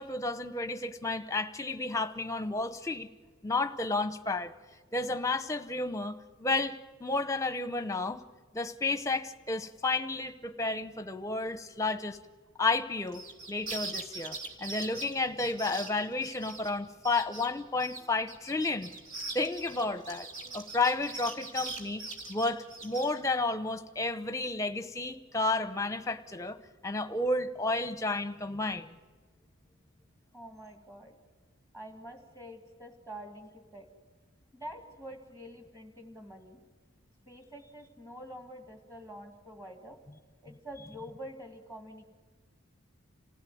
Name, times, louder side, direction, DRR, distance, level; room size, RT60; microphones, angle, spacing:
voice 1, 0.0-3.1 3.4-4.5 4.9-8.2 8.5-12.2 12.6-13.2 13.5-18.9 19.3-20.3 20.5-22.0 22.3-26.6 26.8-28.9, left 3 dB, 15° left, 11 dB, 0.8 m, -32 dB
sound 1, 13.1-16.7 17.0-17.5 17.8-23.1, right 3 dB, 65° right, 3.1 m, -41 dB
voice 2, 30.3-31.2 31.7-33.9 34.5-36.6 37.3-40.0 40.4-42.1, equal, 15° right, 5 dB, 1.9 m, -46 dB
27.5 x 16.0 x 9.3 m, 1.4 s
head